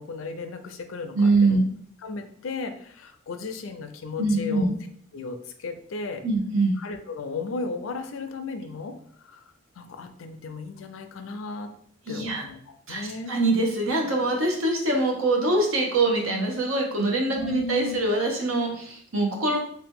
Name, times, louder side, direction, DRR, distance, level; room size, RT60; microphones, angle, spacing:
voice 1, 0.0-1.6 2.0-4.7 5.1-6.2 6.8-8.9 9.2-9.4 9.8-11.7 12.1-13.3 17.3-18.0, left 4 dB, 80° left, 7 dB, 0.5 m, -35 dB
voice 2, 1.1-1.6 4.2-4.7 6.2-6.7 12.1-12.4 12.9-19.6, right 2 dB, 90° right, 1 dB, 1.0 m, -23 dB
3.2 x 2.8 x 3.5 m, 0.64 s
head